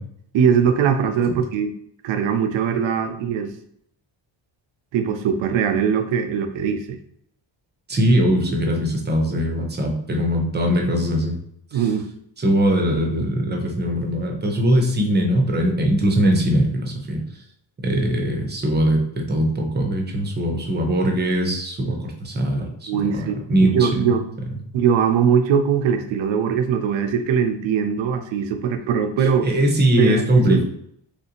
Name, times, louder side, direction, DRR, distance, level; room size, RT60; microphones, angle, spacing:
voice 1, 0.3-1.7 2.0-3.5 4.9-7.0 11.7-12.1 22.9-24.3 24.7-29.5 30.0-30.6, right 7 dB, 75° right, 7 dB, 0.6 m, -21 dB
voice 2, 7.9-11.4 11.7-11.8 12.4-17.2 17.8-24.1 29.2-30.6, equal, 20° right, 1 dB, 0.7 m, -21 dB
3.1 x 2.5 x 2.8 m, 0.70 s
cardioid pair, 95°, 46 cm